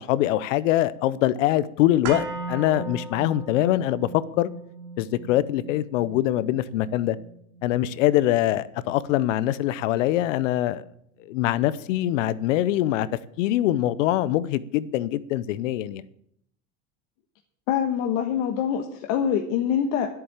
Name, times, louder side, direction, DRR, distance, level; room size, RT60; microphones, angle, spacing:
voice 1, 0.0-4.1 4.4-4.5 5.0-7.2 7.6-10.8 11.3-13.1 13.4-16.0, left 14 dB, 80° left, 0.8 m, -23 dB
sound 1, 2.0-10.1 10.4-10.5, right 3 dB, 85° right, 2.3 m, -38 dB
voice 2, 17.7-20.1, left 8 dB, 65° left, 1.4 m, -24 dB
10.5 x 8.6 x 7.3 m
supercardioid pair, 105°, 37 cm